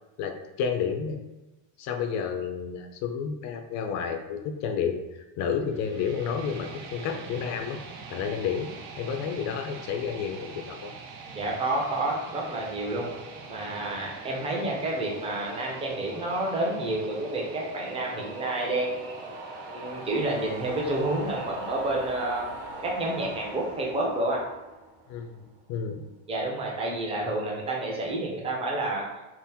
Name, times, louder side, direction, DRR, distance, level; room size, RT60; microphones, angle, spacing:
voice 1, 0.2-1.2 1.8-5.0 5.4-7.8 8.1-8.7 9.0-10.9 25.1-26.0, left 7 dB, 45° left, 5 dB, 0.5 m, -31 dB
sound 1, 5.7-23.7, right 4 dB, 70° right, 0.7 m, -46 dB
sound 2, 11.2-25.6, right 2 dB, 55° right, 1.2 m, -42 dB
voice 2, 11.3-13.1 13.5-19.3 19.7-22.5 22.8-24.4 26.3-29.0, right 2 dB, 15° right, -2 dB, 0.6 m, -29 dB
3.5 x 2.0 x 4.2 m, 1.0 s
cardioid pair, 170°, 38 cm